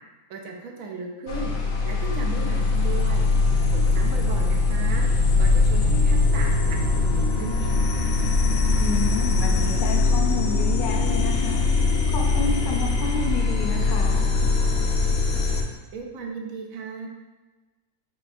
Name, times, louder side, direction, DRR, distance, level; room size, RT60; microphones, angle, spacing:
voice 1, 0.3-1.5 1.8-3.3 3.7-5.1 5.4-6.8 7.1-8.3 15.9-17.1, right 4 dB, 75° right, 1 dB, 1.0 m, -36 dB
sound 1, 1.3-15.6, left 3 dB, 85° left, 1.1 m, -21 dB
voice 2, 8.8-11.8 12.1-14.3, left 3 dB, 50° left, 1 dB, 0.6 m, -31 dB
5.3 x 3.2 x 2.6 m, 1.2 s
omnidirectional pair, 1.4 m